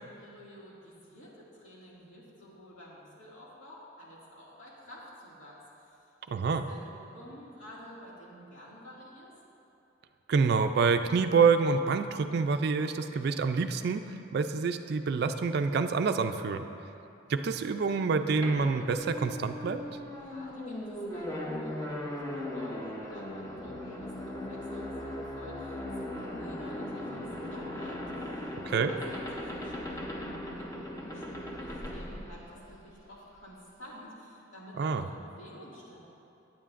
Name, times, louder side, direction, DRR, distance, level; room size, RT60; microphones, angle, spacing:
voice 1, 0.0-6.0 6.3-9.3 20.1-36.1, equal, 85° left, -6 dB, 2.2 m, -51 dB
voice 2, 6.3-6.6 10.3-16.7 17.3-19.8 28.7-28.9 34.8-35.0, right 5 dB, 55° right, 8 dB, 0.3 m, -27 dB
sound 1, 18.4-33.0, left 1 dB, 20° left, 0.8 m, -38 dB
14.5 x 8.8 x 2.5 m, 2.9 s
head